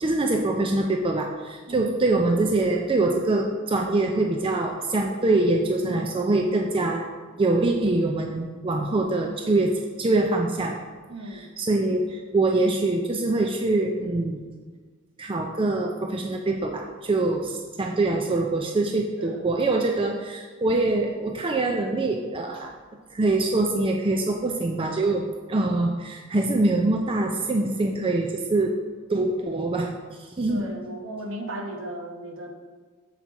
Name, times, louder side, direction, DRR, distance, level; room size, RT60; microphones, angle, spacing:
voice 1, 0.0-7.1 7.4-10.8 11.3-14.4 15.2-22.7 23.1-28.8 29.1-30.7, right 2 dB, 25° right, 2 dB, 0.4 m, -24 dB
voice 2, 5.8-6.2 11.1-11.5 17.5-17.6 19.2-19.4 30.5-32.5, right 1 dB, 65° right, 1 dB, 1.0 m, -36 dB
7.4 x 4.2 x 4.6 m, 1.5 s
head